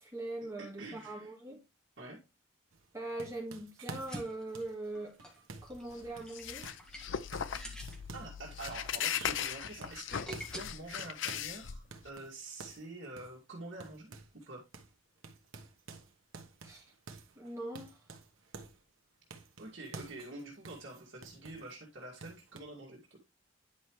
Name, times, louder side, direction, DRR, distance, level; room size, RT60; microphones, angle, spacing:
voice 1, 0.0-1.6 2.9-5.1 5.6-6.7 16.6-16.9 17.4-18.0, right 2 dB, 15° right, 2.6 m, -41 dB
voice 2, 0.6-1.3 2.0-2.2 8.1-14.6 19.6-23.2, right 2 dB, 60° right, 2.3 m, -47 dB
sound 1, 2.7-6.9 7.3-8.4 8.7-9.5 9.8-11.6 11.9-14.5 14.7-14.9 15.2-18.8 19.3-21.8 22.2-22.6, right 4 dB, 90° right, 1.2 m, -50 dB
sound 2, 4.0-10.6, equal, 5° left, 1.7 m, -48 dB
sound 3, 5.6-12.1, left 8 dB, 65° left, 0.5 m, -38 dB
10.0 x 5.7 x 3.1 m
head